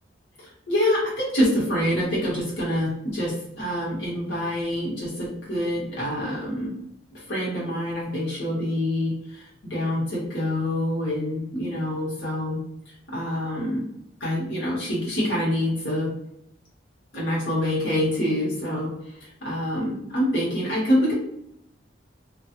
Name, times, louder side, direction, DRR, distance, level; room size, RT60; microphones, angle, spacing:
voice 1, 0.7-6.7 7.1-9.4 9.7-12.6 13.1-13.8 14.2-16.1 17.1-18.9 19.4-21.1, left 1 dB, 70° left, -6 dB, 1.0 m, -26 dB
2.7 x 2.3 x 2.4 m, 0.75 s
head